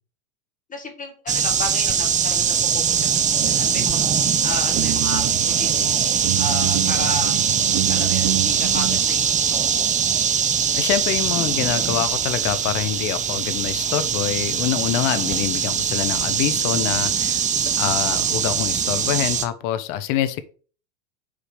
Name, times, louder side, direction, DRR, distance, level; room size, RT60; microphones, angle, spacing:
voice 1, 0.7-3.0 3.3-4.0 4.4-6.0 6.4-7.4 7.9-9.9, left 3 dB, 20° left, 4 dB, 2.0 m, -33 dB
sound 1, 1.3-19.4, right 7 dB, 20° right, 0.6 m, -22 dB
sound 2, 3.4-9.0, right 16 dB, 65° right, 0.9 m, -28 dB
voice 2, 10.7-20.4, left 12 dB, 50° left, 12 dB, 1.0 m, -25 dB
5.1 x 4.8 x 5.0 m, 0.40 s
hypercardioid pair, 110°, 39 cm